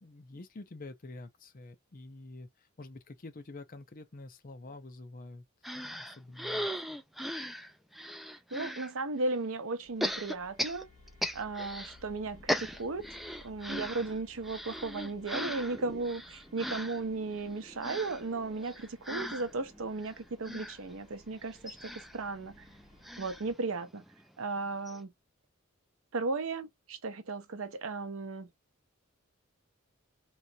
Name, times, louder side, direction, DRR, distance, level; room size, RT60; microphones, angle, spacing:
voice 1, 0.0-5.4 5.7-7.0, left 2 dB, 40° left, 0.6 m, -48 dB
sound 1, 5.6-8.9 10.0-12.0 12.3-24.2 24.6-24.7 24.9-25.0, equal, ahead, 0.3 m, -39 dB
voice 2, 8.5-10.9 11.3-13.1 13.4-22.7 23.2-24.0 24.4-25.1 26.1-28.5, right 3 dB, 70° right, 0.6 m, -35 dB
sound 2, 9.8-23.5, left 2 dB, 60° left, 1.5 m, -60 dB
3.1 x 2.5 x 2.7 m
head